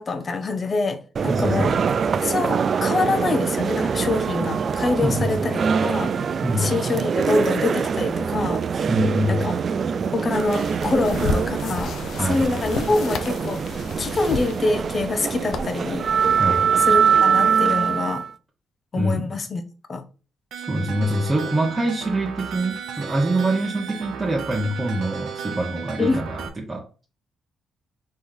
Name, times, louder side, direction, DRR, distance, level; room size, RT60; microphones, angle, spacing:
voice 1, 0.0-1.7 2.2-6.1 6.6-8.7 9.3-9.6 10.1-13.6 14.0-16.1 16.8-18.3 18.9-19.6 19.9-20.0 26.0-26.2, left 3 dB, 35° left, 0.8 m, -25 dB
sound 1, 1.2-18.3, right 6 dB, 50° right, 0.3 m, -23 dB
voice 2, 1.3-1.8 5.0-5.3 6.4-6.7 8.9-9.4 12.2-12.5 16.4-16.8 19.0-19.3 20.6-27.0, right 1 dB, 15° right, 1.0 m, -25 dB
sound 2, 10.3-16.4, left 4 dB, 70° left, 0.6 m, -33 dB
sound 3, 20.5-26.5, right 7 dB, 70° right, 0.8 m, -34 dB
4.3 x 3.2 x 3.7 m
cardioid pair, 90°, 0 cm